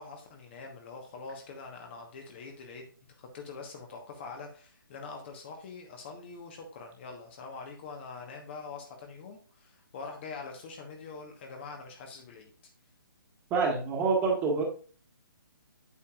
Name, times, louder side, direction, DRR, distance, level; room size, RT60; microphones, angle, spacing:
voice 1, 0.0-2.9 3.2-12.5, left 4 dB, 30° left, 3 dB, 1.2 m, -44 dB
voice 2, 13.5-14.6, right 4 dB, 15° right, -1 dB, 1.7 m, -26 dB
8.4 x 7.0 x 2.4 m, 0.39 s
figure-of-eight pair, 140°, 12 cm